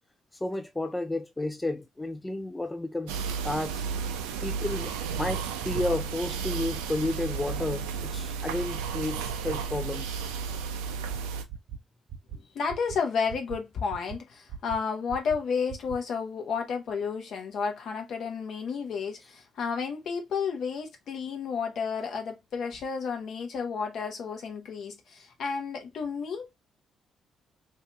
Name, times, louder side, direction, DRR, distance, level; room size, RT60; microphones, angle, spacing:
voice 1, 0.4-3.8 4.4-10.2, left 2 dB, 15° left, 0.4 m, -32 dB
sound 1, 3.1-11.4, right 6 dB, 85° right, 0.4 m, -33 dB
sound 2, 11.1-11.2 11.5-11.8 12.1-12.4 12.7-13.0 13.3-13.6 13.9-14.2 14.5-14.8 15.1-15.4 15.7-16.0, right 8 dB, 65° right, 0.8 m, -39 dB
voice 2, 12.3-26.5, left 6 dB, 65° left, 1.0 m, -32 dB
2.9 x 2.8 x 3.2 m
hypercardioid pair, 45°, 0 cm